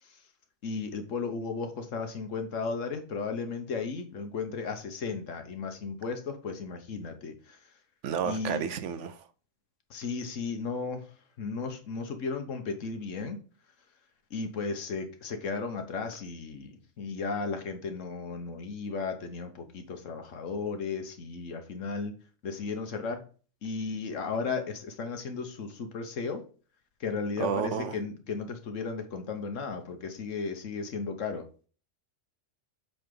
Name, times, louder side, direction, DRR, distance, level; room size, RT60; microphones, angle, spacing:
voice 1, 0.6-7.6 8.2-8.6 9.9-11.1 11.4-13.4 14.3-22.1 22.4-23.2 23.6-26.4 27.0-31.4, left 4 dB, 80° left, 1.4 m, -35 dB
voice 2, 8.0-9.2 27.4-28.0, right 7 dB, 75° right, 1.0 m, -31 dB
7.9 x 4.0 x 3.8 m
omnidirectional pair, 1.3 m